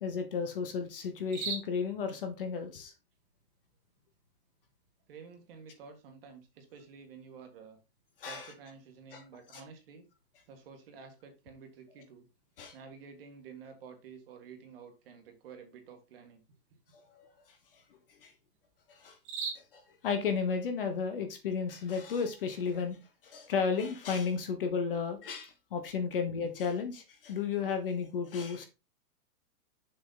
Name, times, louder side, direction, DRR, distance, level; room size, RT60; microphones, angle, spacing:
voice 1, 0.0-2.9 8.2-8.5 9.1-9.2 9.5-9.6 12.6-12.7 17.1-17.3 18.2-18.3 18.9-19.2 19.7-23.0 23.2-28.7, left 5 dB, 35° left, 1.0 m, -33 dB
sound 1, 1.1-20.9, right 5 dB, 20° right, 1.5 m, -50 dB
voice 2, 5.1-7.8 8.2-10.0 10.5-12.3 12.7-16.4, right 6 dB, 35° right, 1.8 m, -51 dB
6.9 x 5.6 x 3.9 m
hypercardioid pair, 180°, 47 cm